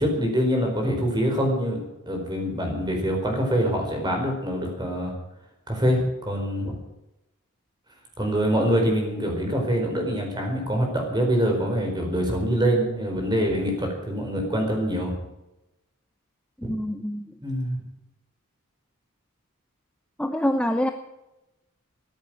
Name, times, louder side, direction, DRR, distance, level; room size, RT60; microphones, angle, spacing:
voice 1, 0.0-5.1 5.7-6.7 8.2-15.1 16.6-16.7 17.4-17.8, equal, 20° right, 2 dB, 4.7 m, -25 dB
voice 2, 16.6-17.3 20.2-20.9, left 1 dB, 5° left, 6 dB, 0.7 m, -26 dB
14.5 x 10.0 x 9.2 m, 0.94 s
head